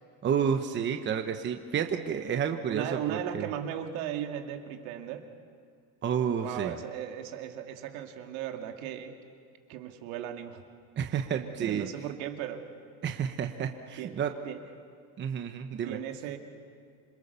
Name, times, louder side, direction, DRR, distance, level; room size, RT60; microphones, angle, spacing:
voice 1, 0.2-3.5 6.0-6.7 11.0-11.9 13.0-14.3 15.2-16.0, right 7 dB, 25° right, 6 dB, 1.1 m, -30 dB
voice 2, 2.6-5.3 6.4-9.1 9.7-10.6 11.4-12.7 14.0-14.6 15.8-16.4, right 10 dB, 70° right, 4 dB, 2.5 m, -37 dB
27.0 x 22.5 x 6.9 m, 2.3 s
supercardioid pair, 135°, 43 cm